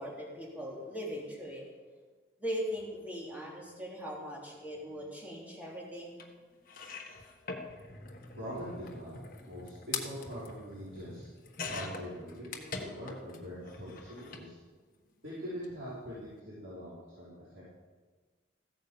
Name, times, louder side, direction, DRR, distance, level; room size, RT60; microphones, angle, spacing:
voice 1, 0.0-1.7 2.4-6.2, equal, 10° right, -4 dB, 3.4 m, -39 dB
sound 1, 6.2-6.3 6.7-13.4 13.7-14.5 15.5-15.7 15.9-16.0, left 4 dB, 45° left, 1.5 m, -43 dB
voice 2, 8.3-9.1 9.4-11.3 11.6-14.6 15.2-17.6, equal, 80° right, -10 dB, 5.1 m, -43 dB
15.5 x 9.4 x 7.2 m, 1.4 s
head